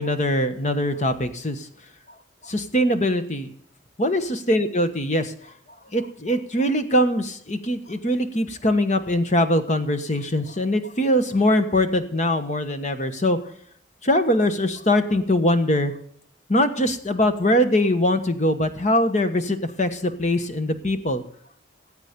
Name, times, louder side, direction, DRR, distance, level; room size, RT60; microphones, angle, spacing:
voice 1, 0.0-1.7 2.4-3.5 4.0-5.5 5.9-13.4 14.0-15.9 16.5-21.2, left 1 dB, 35° left, 8 dB, 1.3 m, -22 dB
17.5 x 8.2 x 5.3 m, 0.64 s
head